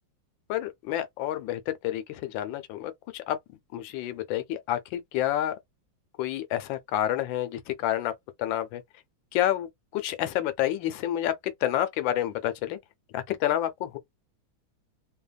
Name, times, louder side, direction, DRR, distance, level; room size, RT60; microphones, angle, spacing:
voice 1, 0.5-3.4 3.7-5.5 6.2-8.1 8.4-8.8 9.3-12.8 13.1-14.0, left 12 dB, 75° left, 1.3 m, -29 dB
3.3 x 2.1 x 2.3 m
omnidirectional pair, 2.2 m